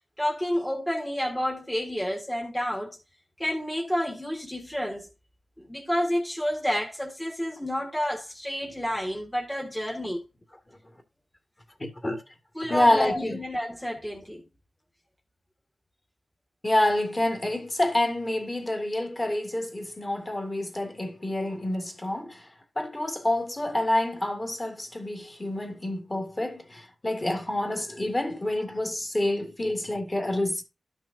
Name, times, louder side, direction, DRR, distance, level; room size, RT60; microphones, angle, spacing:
voice 1, 0.2-3.0 3.4-5.1 5.6-10.2 12.6-14.4, equal, 5° left, 1.4 m, -30 dB
voice 2, 11.8-12.2 12.7-13.4 16.6-22.5 22.8-30.6, left 1 dB, 25° left, 2.0 m, -27 dB
12.5 x 6.1 x 2.6 m
wide cardioid pair, 100°, 0 cm